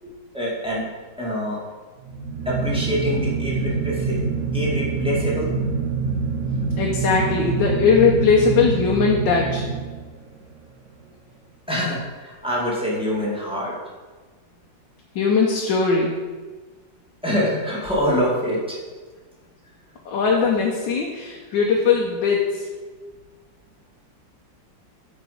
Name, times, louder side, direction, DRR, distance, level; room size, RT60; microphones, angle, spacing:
voice 1, 0.0-0.8 1.2-1.6 2.5-5.5 11.7-13.8 17.2-18.8, equal, 5° right, -6 dB, 1.8 m, -25 dB
sound 1, 2.0-10.4, right 4 dB, 55° right, 1.0 m, -25 dB
voice 2, 6.8-9.6 15.1-16.1 20.0-22.7, left 5 dB, 80° left, -1 dB, 1.6 m, -19 dB
8.7 x 5.0 x 4.9 m, 1.4 s
omnidirectional pair, 2.0 m